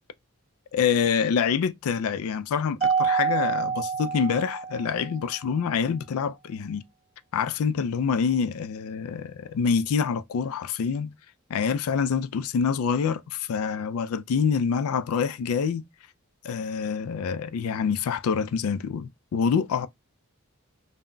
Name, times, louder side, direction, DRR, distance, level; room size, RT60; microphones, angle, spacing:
voice 1, 0.7-6.8 7.3-11.1 11.5-15.8 16.4-19.9, left 6 dB, 80° left, 0.3 m, -26 dB
Mallet percussion, 2.8-5.2, right 6 dB, 30° right, 0.6 m, -27 dB
2.2 x 2.1 x 3.7 m
head